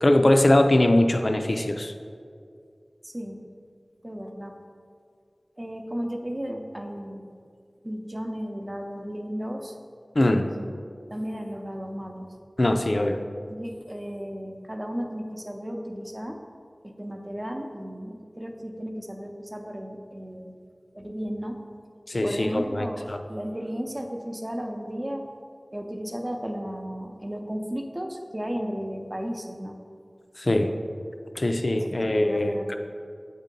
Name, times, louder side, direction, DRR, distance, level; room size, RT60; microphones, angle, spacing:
voice 1, 0.0-1.9 10.2-10.5 12.6-13.2 22.1-23.2 30.4-30.7 31.4-32.7, left 1 dB, 50° left, 6 dB, 0.4 m, -22 dB
voice 2, 3.0-3.4 4.0-4.6 5.6-7.3 7.8-9.7 10.6-10.7 11.1-12.3 13.4-16.4 16.8-20.5 20.9-21.6 22.2-25.3 25.7-29.8 32.0-32.7, equal, 25° right, 3 dB, 0.6 m, -34 dB
8.0 x 2.8 x 5.2 m, 2.3 s
wide cardioid pair, 50°, 0 cm